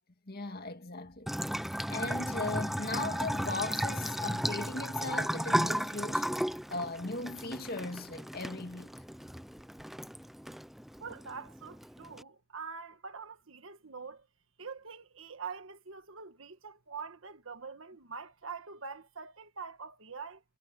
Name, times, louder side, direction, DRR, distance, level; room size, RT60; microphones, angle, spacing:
voice 1, 0.3-1.3 1.9-6.3 6.7-8.9, left 3 dB, 45° left, 2.1 m, -38 dB
Bathtub (filling or washing) / Trickle dribble, 1.3-12.2, equal, ahead, 0.5 m, -35 dB
voice 2, 11.0-14.3 14.6-20.4, right 5 dB, 70° right, 1.6 m, -44 dB
head